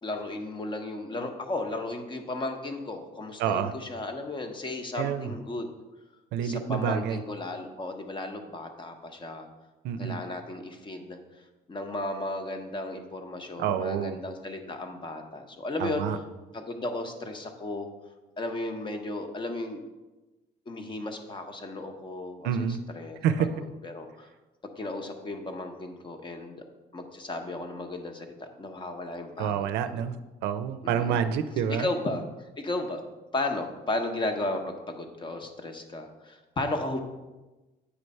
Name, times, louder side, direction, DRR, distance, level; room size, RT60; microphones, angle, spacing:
voice 1, 0.0-5.7 6.4-9.5 10.0-16.0 16.5-17.9 18.4-19.8 20.7-22.7 22.9-24.3 24.8-26.6 26.9-29.7 30.8-31.3 31.7-32.2 32.6-33.0 33.3-37.0, left 2 dB, 30° left, 5 dB, 0.9 m, -34 dB
voice 2, 3.4-3.7 5.0-5.3 6.3-7.2 9.8-10.2 13.6-14.2 15.8-16.2 22.4-22.8 23.2-23.5 29.4-30.1 30.4-31.9, right 8 dB, 85° right, 10 dB, 0.5 m, -28 dB
8.2 x 3.2 x 5.3 m, 1.1 s
cardioid pair, 110°, 17 cm